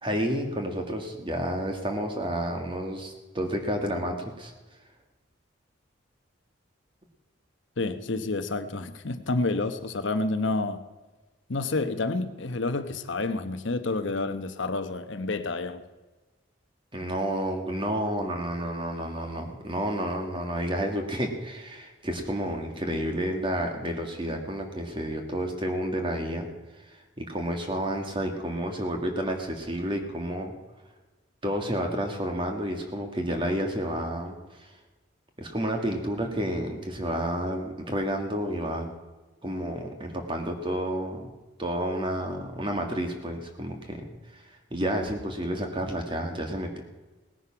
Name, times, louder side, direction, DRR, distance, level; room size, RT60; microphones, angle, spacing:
voice 1, 0.0-4.5 16.9-26.5 27.2-30.5 31.4-34.7 35.4-38.9 39.4-41.3 41.6-44.4 44.7-46.8, equal, 25° right, 4 dB, 1.9 m, -30 dB
voice 2, 7.8-10.8 11.5-15.8, left 3 dB, 75° left, 9 dB, 1.0 m, -29 dB
18.5 x 9.8 x 5.8 m, 1.2 s
head